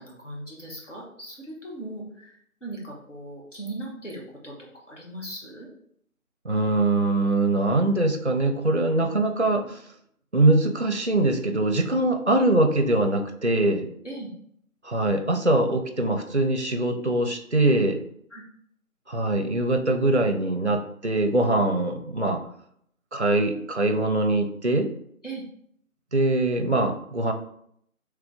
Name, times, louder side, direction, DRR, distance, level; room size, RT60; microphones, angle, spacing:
voice 1, 0.0-5.7 8.9-9.1 12.4-12.5 14.0-14.3 18.3-18.4 25.2-25.4, right 2 dB, 55° left, -3 dB, 1.5 m, -39 dB
voice 2, 6.4-9.8 10.3-13.9 14.8-18.0 19.1-22.4 23.1-24.9 26.1-27.3, right 2 dB, 50° right, 6 dB, 0.5 m, -23 dB
3.7 x 3.3 x 3.5 m, 0.68 s
figure-of-eight pair, 175°, 44 cm